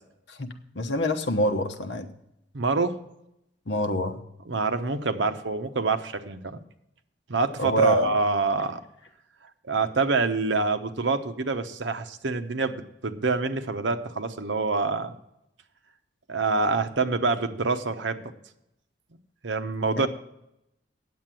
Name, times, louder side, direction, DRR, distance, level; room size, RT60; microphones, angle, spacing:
voice 1, 0.3-2.1 3.7-4.2 7.6-8.1 19.9-20.1, equal, 70° left, 7 dB, 1.0 m, -26 dB
voice 2, 2.5-3.0 4.5-6.6 7.3-8.8 9.6-15.1 16.3-18.2 19.4-20.1, right 3 dB, 80° right, 9 dB, 0.9 m, -26 dB
9.4 x 7.7 x 7.5 m, 0.82 s
head